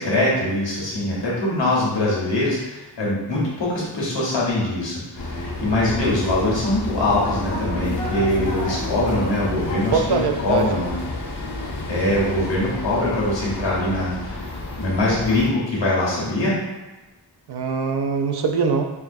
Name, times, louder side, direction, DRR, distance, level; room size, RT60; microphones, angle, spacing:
voice 1, 0.0-11.0 11.9-14.4 14.8-16.6, left 1 dB, 90° left, -6 dB, 1.3 m, -23 dB
sound 1, 5.2-15.5, left 2 dB, 65° left, 0.8 m, -30 dB
voice 2, 9.9-10.9 17.5-18.9, right 5 dB, 65° right, 4 dB, 0.5 m, -22 dB
5.0 x 2.5 x 2.6 m, 1.1 s
wide cardioid pair, 80°, 42 cm